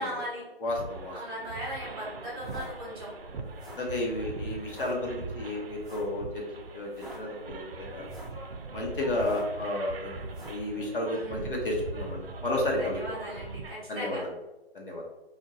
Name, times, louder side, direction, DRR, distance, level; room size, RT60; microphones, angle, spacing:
voice 1, 0.0-0.4 1.1-3.1 11.1-11.5 12.8-14.2, equal, 25° right, -7 dB, 1.2 m, -38 dB
voice 2, 0.6-1.2 3.3-3.4 3.8-8.1 8.7-13.0 13.9-14.3 14.7-15.0, left 1 dB, 55° left, -2 dB, 0.8 m, -32 dB
sound 1, 0.7-13.7, right 3 dB, 65° right, 0.5 m, -41 dB
sound 2, 2.4-2.7 3.4-3.9 4.6-4.9 5.8-6.2 6.8-7.2 7.9-8.4 9.1-9.6 10.3-10.7, equal, ahead, 0.7 m, -46 dB
2.5 x 2.2 x 3.6 m, 1.0 s
figure-of-eight pair, 155°, 31 cm